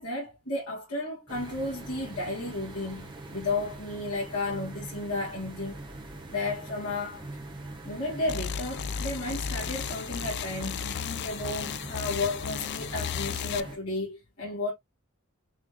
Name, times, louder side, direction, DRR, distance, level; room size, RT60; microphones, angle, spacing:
voice 1, 0.0-5.7 6.3-7.3 7.8-14.7, left 2 dB, 80° left, 2.4 m, -33 dB
sound 1, 1.3-13.8, right 2 dB, 20° right, 1.1 m, -43 dB
sound 2, 8.3-13.6, left 8 dB, 50° left, 0.4 m, -34 dB
6.2 x 3.3 x 2.3 m
head